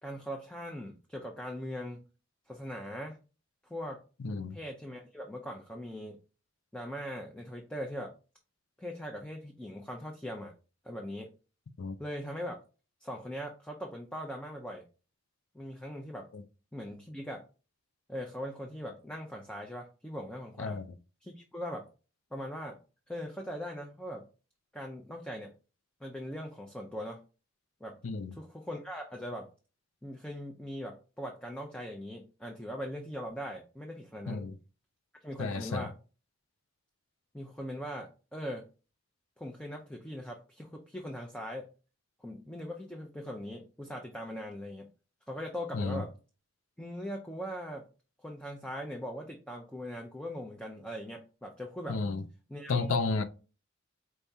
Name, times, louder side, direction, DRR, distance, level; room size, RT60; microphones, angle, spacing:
voice 1, 0.0-2.0 2.5-3.2 3.6-4.0 4.5-6.2 6.7-8.1 8.8-10.5 10.8-11.3 12.0-12.6 13.0-14.8 15.5-16.3 16.7-17.4 18.1-20.8 21.2-21.9 22.3-22.8 23.1-24.2 24.7-25.5 26.0-27.2 27.8-28.0 28.3-29.5 30.0-34.5 35.2-35.9 37.3-38.7 39.4-41.7 42.2-44.9 45.3-46.1 46.8-47.9 48.2-52.0 52.5-53.0, equal, 5° left, 0.5 m, -40 dB
voice 2, 4.2-4.6 11.8-12.0 16.3-16.4 20.6-20.9 28.0-28.3 34.3-34.5 35.4-35.9 45.7-46.0 51.9-52.2 52.7-53.2, left 4 dB, 90° left, 0.5 m, -32 dB
4.5 x 3.5 x 2.7 m
head